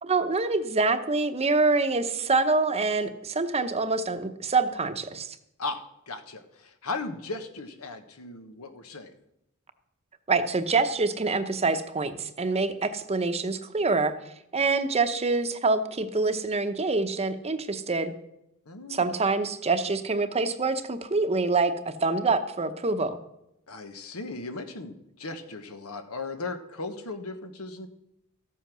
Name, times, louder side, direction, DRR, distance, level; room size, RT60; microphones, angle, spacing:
voice 1, 0.0-5.4 10.3-14.2 14.5-18.1 18.9-23.2, right 3 dB, 30° right, 9 dB, 0.8 m, -26 dB
voice 2, 5.6-9.1 18.7-19.2 23.7-27.9, left 3 dB, 90° left, 8 dB, 1.3 m, -37 dB
13.5 x 8.4 x 6.2 m, 0.83 s
head